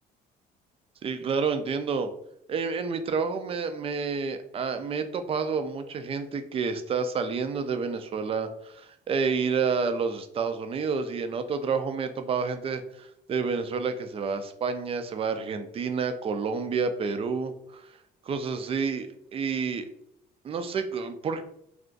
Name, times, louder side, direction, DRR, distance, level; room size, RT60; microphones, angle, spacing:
voice 1, 1.0-2.1 2.5-17.8 18.3-19.9 20.4-21.4, right 5 dB, 35° right, 9 dB, 0.4 m, -29 dB
2.4 x 2.3 x 3.7 m, 0.74 s
cardioid pair, 110°, 17 cm